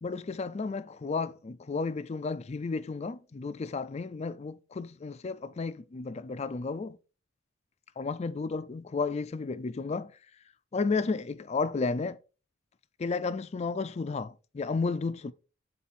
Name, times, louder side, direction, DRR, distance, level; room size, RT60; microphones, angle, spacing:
voice 1, 0.0-7.0 8.0-10.1 10.7-12.2 13.0-15.3, left 4 dB, 30° left, 0.4 m, -32 dB
7.4 x 4.0 x 4.2 m
head